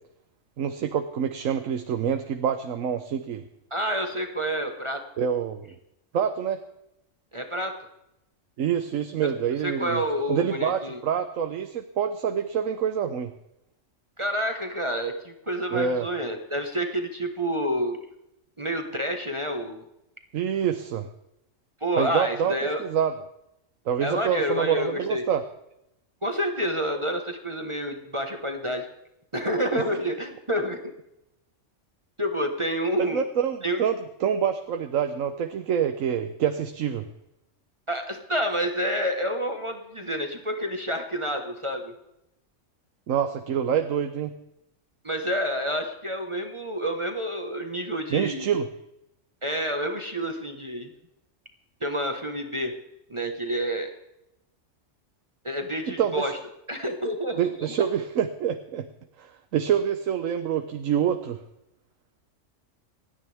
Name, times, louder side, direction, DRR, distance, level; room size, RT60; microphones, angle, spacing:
voice 1, 0.6-3.4 5.2-5.7 6.1-6.6 8.6-10.0 10.3-13.3 15.7-16.1 20.3-21.1 22.0-22.5 22.8-23.1 23.9-25.4 29.7-29.8 33.0-33.9 34.2-37.1 43.1-44.3 48.1-48.7 56.0-56.3 57.4-58.9 59.2-61.4, right 8 dB, 90° right, 8 dB, 1.2 m, -26 dB
voice 2, 3.7-5.0 7.3-7.7 9.2-9.3 9.6-11.0 14.2-18.0 18.6-19.8 21.8-22.8 24.0-25.2 26.2-28.9 29.3-30.9 32.2-33.2 33.6-33.8 37.9-41.9 45.0-48.6 49.4-50.9 51.8-52.7 53.1-53.9 55.4-56.4 56.7-57.7, equal, 25° right, 4 dB, 1.3 m, -28 dB
28.0 x 10.0 x 3.4 m, 0.84 s
omnidirectional pair, 1.3 m